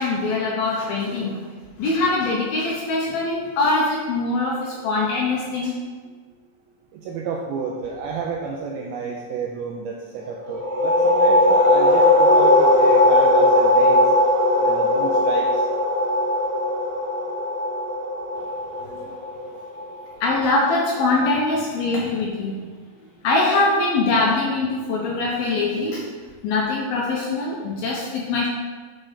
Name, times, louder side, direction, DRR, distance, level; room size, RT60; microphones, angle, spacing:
voice 1, 0.0-1.4 1.8-5.7 18.9-19.2 20.2-22.6 23.2-26.1 26.4-28.5, left 3 dB, 75° left, -3 dB, 2.4 m, -23 dB
voice 2, 6.9-14.0 14.6-15.6, right 4 dB, 90° right, -1 dB, 2.2 m, -30 dB
sound 1, 10.4-19.9, left 1 dB, 60° right, 2.3 m, -18 dB
9.3 x 7.4 x 3.4 m, 1.5 s
omnidirectional pair, 5.1 m